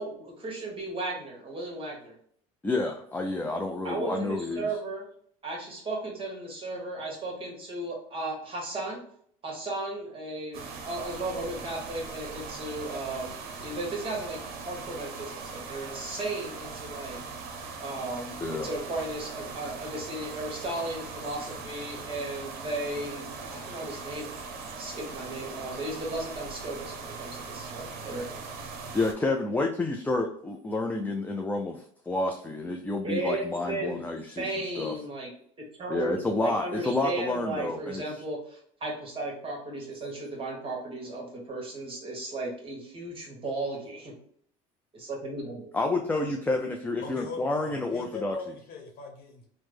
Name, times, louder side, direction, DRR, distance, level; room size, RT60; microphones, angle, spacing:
voice 1, 0.0-2.2 3.8-5.1 5.4-9.0 9.4-17.2 17.8-24.5 24.8-28.4 33.0-34.0 34.4-35.3 35.8-44.1 44.9-45.7, right 2 dB, 30° right, -1 dB, 1.3 m, -35 dB
voice 2, 2.6-4.7 18.4-18.7 28.9-34.9 35.9-38.0 45.7-48.4, left 2 dB, 10° left, 3 dB, 0.4 m, -29 dB
sound 1, 10.5-29.1, right 4 dB, 60° right, 0.7 m, -40 dB
voice 3, 47.0-49.5, left 5 dB, 60° left, 1 dB, 1.0 m, -41 dB
3.0 x 2.1 x 3.3 m, 0.63 s
hypercardioid pair, 80°, 18 cm